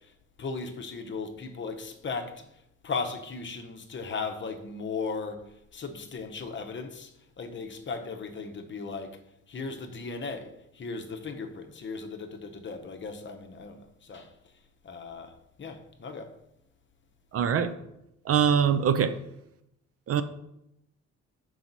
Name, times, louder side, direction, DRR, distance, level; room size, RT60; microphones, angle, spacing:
voice 1, 0.4-2.4 2.8-7.1 7.4-9.1 9.5-14.3 14.8-15.3 15.6-16.3, left 4 dB, 40° left, 0.8 m, -37 dB
voice 2, 17.3-17.7 18.3-19.1 20.1-20.2, right 7 dB, 50° right, 0.5 m, -23 dB
5.8 x 4.8 x 4.0 m
cardioid pair, 90°, 30 cm